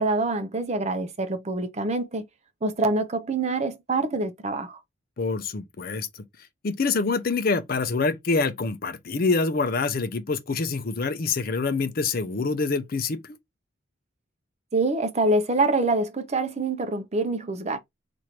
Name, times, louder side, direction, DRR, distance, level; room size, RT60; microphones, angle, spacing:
voice 1, 0.0-2.2 2.6-4.8 14.7-17.8, right 2 dB, 35° right, 0.6 m, -25 dB
voice 2, 5.2-6.1 6.6-13.4, left 4 dB, 45° left, 0.5 m, -26 dB
3.1 x 2.6 x 4.3 m
head